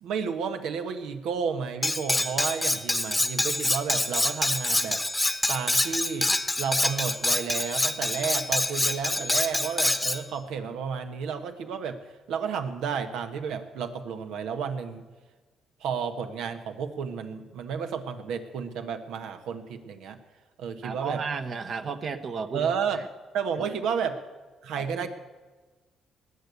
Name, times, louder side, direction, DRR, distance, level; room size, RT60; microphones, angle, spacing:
voice 1, 0.0-5.0 5.5-6.3 6.6-12.0 12.3-15.1 15.8-20.2 20.6-21.2 22.5-23.0 23.3-24.2 24.6-25.1, right 6 dB, 85° right, 7 dB, 1.3 m, -31 dB
Cutlery silverware, 1.8-10.2, left 2 dB, 10° left, 1.0 m, -26 dB
voice 2, 20.8-22.7 24.7-25.1, right 5 dB, 50° right, 8 dB, 1.0 m, -33 dB
19.5 x 6.8 x 8.2 m, 1.3 s
cardioid pair, 90°, 0 cm